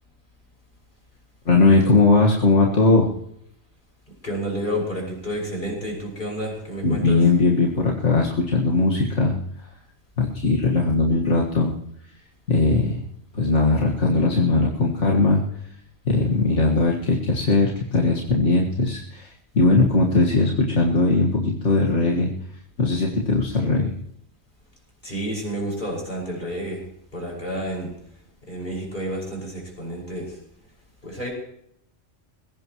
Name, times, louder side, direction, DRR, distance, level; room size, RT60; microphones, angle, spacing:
voice 1, 1.5-3.1 6.8-9.3 10.2-11.7 12.5-13.0 13.3-15.4 16.1-22.3 22.8-23.9, left 3 dB, 70° left, -1 dB, 2.1 m, -19 dB
voice 2, 4.2-7.2 25.0-26.9 27.1-27.9 28.5-30.4 31.0-31.3, equal, 40° left, -1 dB, 6.0 m, -30 dB
21.0 x 17.0 x 3.1 m, 0.74 s
omnidirectional pair, 1.3 m